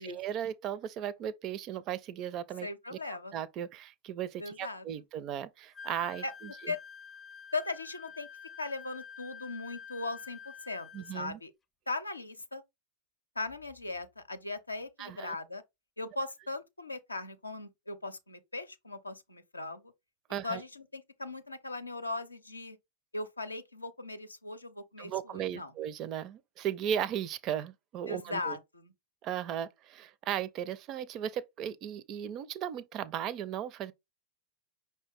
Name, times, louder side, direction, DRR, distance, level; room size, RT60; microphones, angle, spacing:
voice 1, 0.0-3.0 3.3-6.7 10.9-11.4 15.0-15.4 20.3-20.6 25.0-28.6 29.2-33.9, right 10 dB, 35° right, 0.4 m, -36 dB
voice 2, 2.6-3.3 4.4-4.8 6.2-6.3 6.7-6.8 7.5-8.3 8.6-11.5 11.9-12.6 13.4-15.6 16.0-19.9 20.4-22.8 23.1-25.7 28.1-28.9, left 3 dB, 80° left, 0.6 m, -39 dB
Wind instrument woodwind instrument, 5.7-11.2, left 7 dB, 20° left, 0.5 m, -48 dB
5.4 x 2.7 x 3.5 m
figure-of-eight pair, 90°, 0 cm